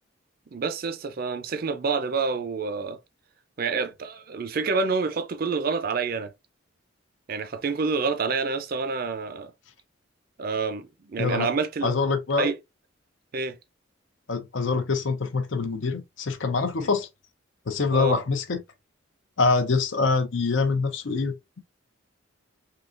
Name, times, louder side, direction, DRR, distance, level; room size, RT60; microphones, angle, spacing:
voice 1, 0.5-3.0 3.6-6.3 7.3-9.5 10.4-11.9 12.4-12.6 13.3-13.6 16.8-16.9 17.9-18.2, right 4 dB, 50° right, 0.5 m, -28 dB
voice 2, 11.2-11.5 11.8-12.5 14.3-17.1 17.7-18.6 19.4-21.6, left 4 dB, 70° left, 0.6 m, -25 dB
3.8 x 2.8 x 2.4 m
head